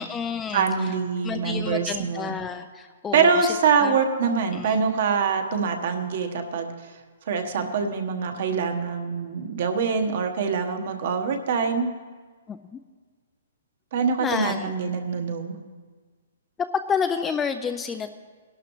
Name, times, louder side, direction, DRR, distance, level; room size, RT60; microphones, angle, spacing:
voice 1, 0.0-0.6 1.2-3.3 3.8-3.9 4.5-4.7 12.5-12.8 14.2-14.7 16.9-18.1, left 6 dB, 10° left, 9 dB, 0.3 m, -29 dB
voice 2, 0.5-2.3 3.1-6.9 7.3-11.9 13.9-15.5, right 5 dB, 50° right, 5 dB, 1.2 m, -24 dB
20.0 x 11.5 x 3.1 m, 1.5 s
hypercardioid pair, 165°, 0 cm